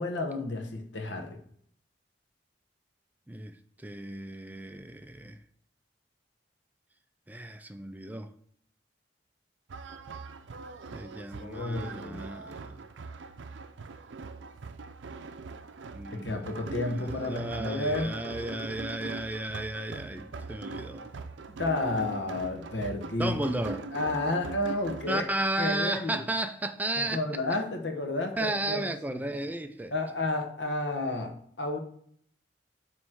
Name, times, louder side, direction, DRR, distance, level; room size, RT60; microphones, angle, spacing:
voice 1, 0.0-1.4 11.4-12.2 16.1-18.1 21.6-25.2 25.6-26.2 27.1-29.2 29.9-31.8, left 2 dB, 75° left, 1.1 m, -31 dB
voice 2, 3.3-5.4 7.3-8.3 10.9-12.9 15.9-16.7 17.0-21.1 23.2-23.8 25.1-27.4 28.4-29.9, right 1 dB, 10° right, 0.3 m, -34 dB
sound 1, 9.7-25.3, right 3 dB, 85° right, 0.5 m, -41 dB
7.8 x 3.2 x 6.1 m
head